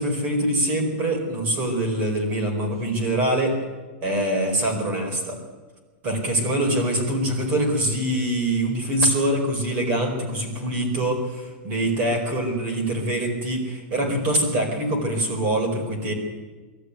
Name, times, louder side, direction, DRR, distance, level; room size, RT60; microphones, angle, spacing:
voice 1, 0.0-3.6 4.0-5.4 6.0-16.1, right 1 dB, 25° right, 3 dB, 4.7 m, -24 dB
23.0 x 13.5 x 9.7 m, 1.3 s
supercardioid pair, 180°, 6 cm